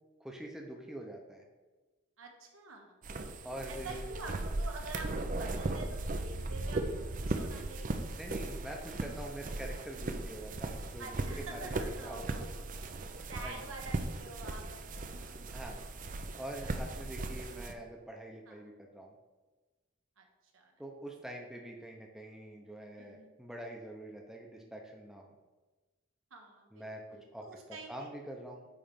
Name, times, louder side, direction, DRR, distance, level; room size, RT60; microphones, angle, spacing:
voice 1, 0.2-1.4 3.4-4.1 8.1-12.5 13.4-13.6 15.5-15.8 16.4-19.1 20.8-25.3 26.7-27.0 27.3-28.7, right 1 dB, ahead, 0 dB, 0.7 m, -45 dB
voice 2, 2.2-2.9 3.7-5.1 5.4-8.0 11.0-12.6 13.3-15.6 16.6-16.8 18.5-18.6 20.2-20.3 20.5-20.7 23.0-23.4 26.3-28.1, right 2 dB, 80° right, 2 dB, 1.3 m, -47 dB
sound 1, 3.0-17.7, right 2 dB, 40° right, 0.5 m, -38 dB
8.8 x 3.3 x 5.2 m, 1.2 s
head